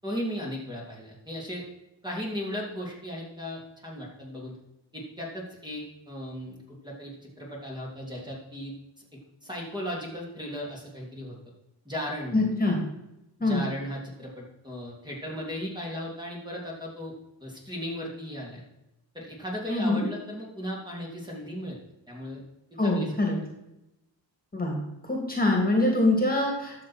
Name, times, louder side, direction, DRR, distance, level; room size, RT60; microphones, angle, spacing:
voice 1, 0.0-1.6 2.0-4.6 4.9-11.4 11.8-12.5 13.4-17.1 17.4-18.6 19.1-21.8 22.1-22.4 22.8-23.1, equal, 10° right, -4 dB, 3.0 m, -36 dB
voice 2, 12.3-12.8 13.4-13.6 19.7-20.1 22.8-23.4 24.5-26.7, left 2 dB, 20° left, -1 dB, 2.8 m, -24 dB
12.0 x 6.6 x 4.5 m, 0.90 s
cardioid pair, 90°, 45 cm